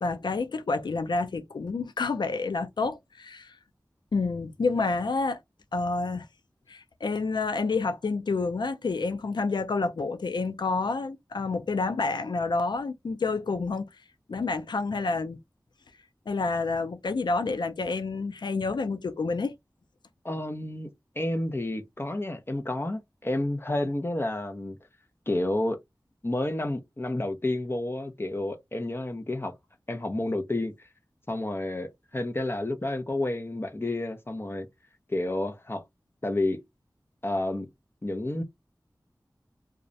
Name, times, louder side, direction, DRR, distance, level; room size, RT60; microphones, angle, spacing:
voice 1, 0.0-3.5 4.1-5.4 5.7-6.3 6.7-13.9 14.3-15.4 16.3-19.6, left 3 dB, 80° left, 0.4 m, -29 dB
voice 2, 20.2-20.9 21.2-24.8 25.3-25.8 26.2-29.5 29.9-30.9 31.3-34.7 35.1-35.8 36.2-36.6 37.2-37.7 38.0-38.4, left 1 dB, 30° left, 0.6 m, -30 dB
2.3 x 2.0 x 2.6 m
wide cardioid pair, 50°, 8 cm